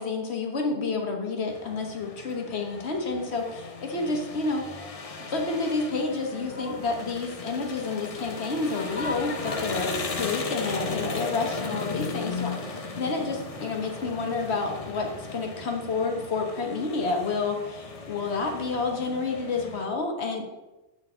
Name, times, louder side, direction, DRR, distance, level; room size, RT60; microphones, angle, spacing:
voice 1, 0.0-4.9 5.3-20.5, left 3 dB, 65° left, 2 dB, 1.5 m, -29 dB
sound 1, 1.5-19.9, left 3 dB, 35° left, 0.7 m, -36 dB
7.5 x 6.4 x 4.3 m, 1.1 s
omnidirectional pair, 1.2 m